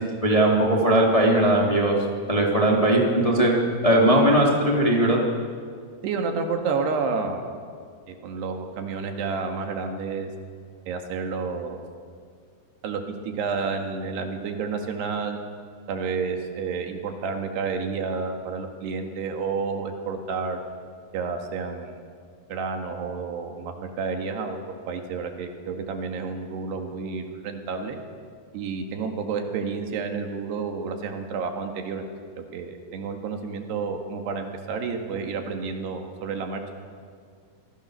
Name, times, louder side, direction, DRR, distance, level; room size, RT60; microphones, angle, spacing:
voice 1, 0.0-1.9 2.3-3.5 3.8-5.2, right 1 dB, 10° left, -2 dB, 2.5 m, -19 dB
voice 2, 6.0-7.4 8.1-10.3 10.9-11.8 12.8-15.4 15.9-20.6 21.1-22.0 22.5-24.6 24.9-28.0 28.5-32.1 32.4-36.6, right 5 dB, 90° right, 4 dB, 4.0 m, -30 dB
27.0 x 19.5 x 6.7 m, 2.1 s
omnidirectional pair, 4.6 m